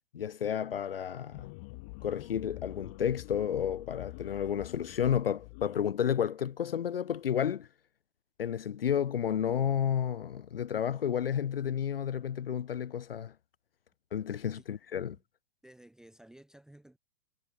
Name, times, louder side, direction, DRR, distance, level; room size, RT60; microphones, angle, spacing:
voice 1, 0.1-1.5 2.0-7.7 8.4-13.3 14.1-15.2, left 9 dB, 75° left, 0.5 m, -31 dB
sound 1, 1.3-5.8, left 29 dB, 15° left, 0.3 m, -46 dB
voice 2, 15.6-17.0, right 1 dB, ahead, 1.2 m, -55 dB
figure-of-eight pair, 115°, 29 cm